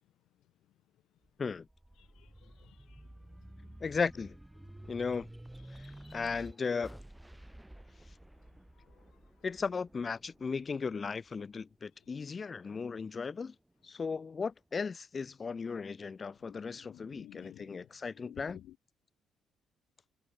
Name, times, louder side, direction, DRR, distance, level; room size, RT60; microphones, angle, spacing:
sound 1, 1.2-12.0 12.6-13.7, right 1 dB, 5° right, 6.6 m, -52 dB
voice 1, 2.0-3.1 3.6-3.8 4.8-4.9 5.7-6.2 8.8-9.2 12.3-12.4 16.4-17.9 18.2-18.7, left 13 dB, 80° left, 1.7 m, -56 dB
voice 2, 3.8-4.4 4.9-5.3 5.8-7.0 9.4-13.5 13.8-18.6, left 5 dB, 35° left, 3.1 m, -36 dB
cardioid pair, 90°, 0 cm